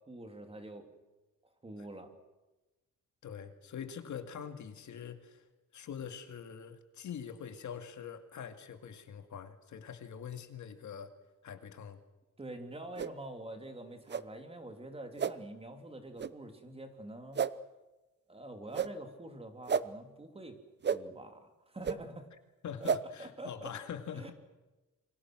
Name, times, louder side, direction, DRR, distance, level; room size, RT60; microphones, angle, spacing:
voice 1, 0.1-0.9 1.4-2.1 12.4-17.4 18.3-20.6 20.9-22.3 22.8-22.9 23.2-23.7 24.1-24.3, right 1 dB, 20° right, 6 dB, 3.1 m, -46 dB
voice 2, 3.2-5.4 5.7-11.1 11.4-12.0 22.6-24.3, left 7 dB, 65° left, 7 dB, 2.4 m, -44 dB
sound 1, 13.0-13.1 14.1-14.2 15.2-15.3 16.2-16.3 17.3-17.5 18.7-18.9 19.7-19.8 20.8-21.0 21.8-22.0 22.8-23.0, right 7 dB, 35° right, 0.8 m, -31 dB
28.5 x 25.0 x 6.2 m, 1.1 s
wide cardioid pair, 155°, 32 cm